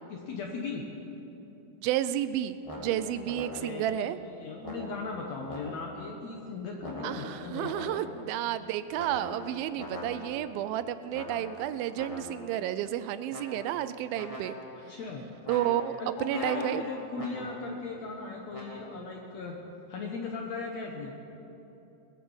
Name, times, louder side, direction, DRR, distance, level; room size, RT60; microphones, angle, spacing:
voice 1, 0.1-0.9 3.6-7.9 14.7-15.3 16.0-19.6 19.9-21.1, left 4 dB, 65° left, 1 dB, 1.8 m, -38 dB
voice 2, 1.8-4.2 7.0-14.6 15.5-16.8, right 11 dB, 85° right, 13 dB, 2.3 m, -31 dB
sound 1, 2.6-3.9 4.6-6.1 6.8-8.3 8.9-10.5 11.1-12.5 13.3-13.9 14.1-14.9 15.4-17.7 18.5-18.8, equal, 15° left, 1.5 m, -42 dB
20.5 x 9.4 x 7.0 m, 3.0 s
omnidirectional pair, 4.3 m